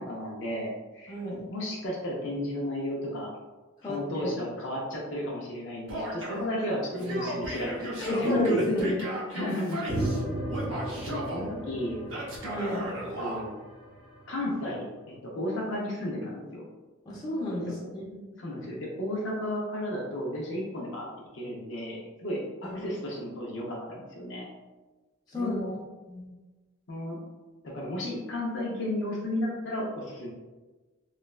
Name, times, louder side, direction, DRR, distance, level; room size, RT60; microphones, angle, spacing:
voice 1, 0.0-1.2 1.5-3.3 3.8-8.3 9.3-10.0 10.8-12.0 13.2-13.5 14.3-16.7 18.4-21.1 21.3-24.5 25.3-25.8 26.9-27.2 27.6-30.3, left 1 dB, 60° left, -3 dB, 0.5 m, -34 dB
voice 2, 1.1-1.5 3.8-4.3 6.6-6.7 7.0-7.2 8.0-9.1 12.4-12.8 17.1-18.2 22.6-22.8 25.3-25.6 26.1-26.2, left 1 dB, 20° left, -7 dB, 0.7 m, -30 dB
Male speech man speaking / Yell, 5.9-6.5 6.9-10.2 10.5-11.5 12.1-13.4, right 1 dB, 70° right, 0.6 m, -35 dB
sound 1, 9.9-14.5, right 1 dB, 25° right, 0.6 m, -35 dB
3.1 x 2.1 x 2.3 m, 1.2 s
head